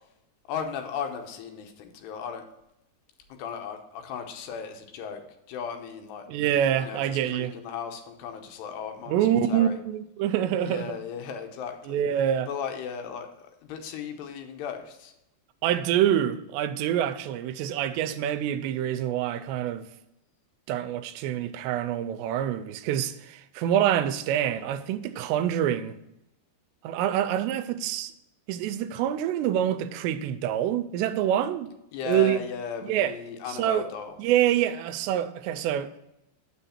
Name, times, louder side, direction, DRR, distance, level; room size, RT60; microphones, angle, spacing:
voice 1, 0.5-2.4 3.3-6.2 6.8-9.2 9.5-9.8 10.6-12.0 12.5-15.1 31.9-34.2, left 7 dB, 80° left, 2.9 m, -36 dB
voice 2, 6.3-7.5 9.1-10.9 11.9-12.5 15.6-19.9 20.7-26.0 26.8-28.1 28.5-31.7 32.1-32.4 32.9-33.1 33.5-33.9 34.2-35.9, right 10 dB, 90° right, 2.8 m, -26 dB
8.0 x 6.4 x 4.3 m
omnidirectional pair, 4.9 m